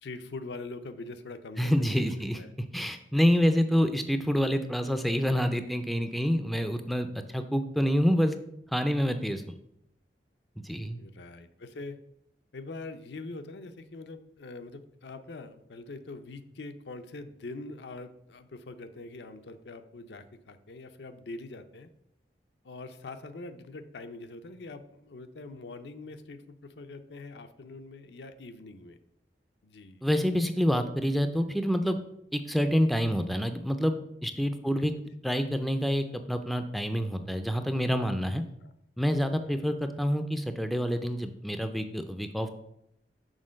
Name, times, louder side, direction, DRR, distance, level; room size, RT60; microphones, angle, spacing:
voice 1, 0.0-2.5 6.8-7.1 11.0-12.0 12.5-21.9 22.6-29.0 29.6-30.0 38.6-38.7 39.4-39.7, left 3 dB, 75° left, 8 dB, 0.6 m, -43 dB
voice 2, 1.6-2.4 2.7-8.4 8.7-9.5 10.6-11.0 30.0-32.0 32.3-34.9 35.2-38.4 39.0-42.5, equal, ahead, 8 dB, 0.4 m, -27 dB
6.4 x 3.8 x 6.3 m, 0.77 s
head